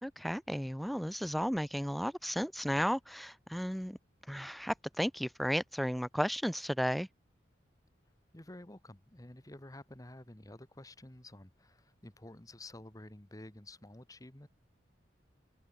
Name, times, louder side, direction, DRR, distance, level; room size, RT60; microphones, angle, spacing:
voice 1, 0.0-4.0 4.3-7.1, equal, ahead, 0.3 m, -34 dB
voice 2, 8.3-14.5, left 1 dB, 20° left, 1.4 m, -51 dB
open air
head